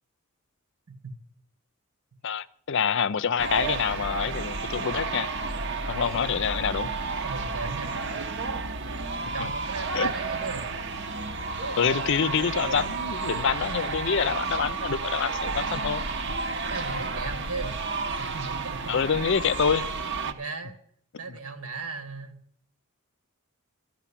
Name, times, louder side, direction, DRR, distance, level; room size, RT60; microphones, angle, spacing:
voice 1, 2.2-5.3 5.9-6.9 9.4-9.5 9.9-10.1 11.8-16.0 18.9-19.9 21.3-21.4, left 6 dB, 55° left, 15 dB, 0.5 m, -26 dB
sound 1, 3.4-20.3, right 4 dB, 55° right, 0.9 m, -31 dB
voice 2, 7.2-8.0 9.2-10.7 16.7-17.8 18.1-18.9 20.3-20.8 21.2-22.3, right 4 dB, 75° right, 9 dB, 1.9 m, -36 dB
13.5 x 6.5 x 10.0 m, 0.64 s
head